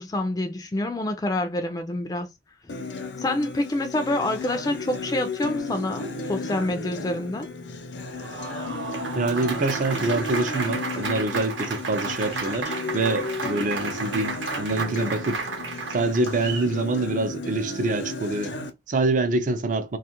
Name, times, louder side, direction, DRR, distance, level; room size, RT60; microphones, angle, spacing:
voice 1, 0.0-2.3 3.2-7.5, left 1 dB, 20° left, 0.3 m, -27 dB
Acoustic guitar, 2.7-18.7, left 3 dB, 75° left, 0.6 m, -34 dB
Applause, 8.0-16.7, right 4 dB, 85° right, 0.8 m, -33 dB
voice 2, 9.1-15.4 15.9-20.0, right 2 dB, 45° right, 0.4 m, -26 dB
2.4 x 2.3 x 2.8 m
head